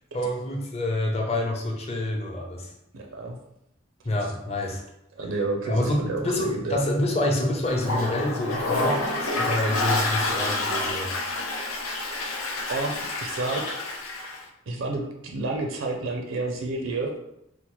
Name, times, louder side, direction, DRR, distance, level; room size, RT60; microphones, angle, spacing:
voice 1, 0.1-2.7 4.0-4.8 5.6-11.1, left 1 dB, 30° left, 0 dB, 0.6 m, -27 dB
voice 2, 2.9-3.4 5.2-6.8 12.7-13.7 14.7-17.1, right 3 dB, 70° right, 2 dB, 0.5 m, -30 dB
Toilet flush, 7.7-14.4, left 2 dB, 85° left, 0.6 m, -28 dB
4.2 x 2.1 x 3.0 m, 0.81 s
head